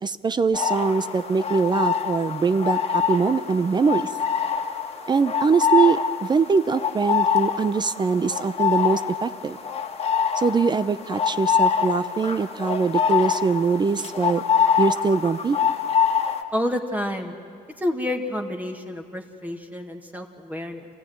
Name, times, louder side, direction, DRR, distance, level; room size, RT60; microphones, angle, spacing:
voice 1, 0.0-4.1 5.1-9.6 10.4-14.4 14.8-15.6, right 5 dB, 25° right, 13 dB, 0.6 m, -22 dB
sound 1, 0.5-16.4, left 7 dB, 35° left, 1.7 m, -25 dB
voice 2, 16.5-17.3 17.8-20.9, left 1 dB, 10° right, 3 dB, 1.8 m, -29 dB
27.5 x 15.0 x 9.3 m, 2.2 s
cardioid pair, 110°, 17 cm